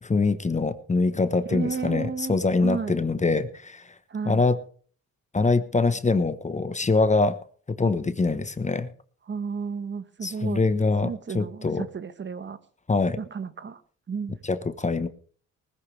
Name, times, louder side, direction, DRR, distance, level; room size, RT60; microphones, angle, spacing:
voice 1, 0.0-3.9 4.2-4.6 5.3-7.4 7.7-8.9 10.2-11.9 12.9-13.2 14.4-15.1, left 3 dB, 25° left, 12 dB, 1.2 m, -24 dB
voice 2, 1.4-3.0 4.1-4.4 9.3-10.7 11.0-12.6 13.2-13.8 14.1-14.4, right 5 dB, 40° right, 12 dB, 1.3 m, -33 dB
19.5 x 14.0 x 3.4 m, 0.44 s
cardioid pair, 90°, 30 cm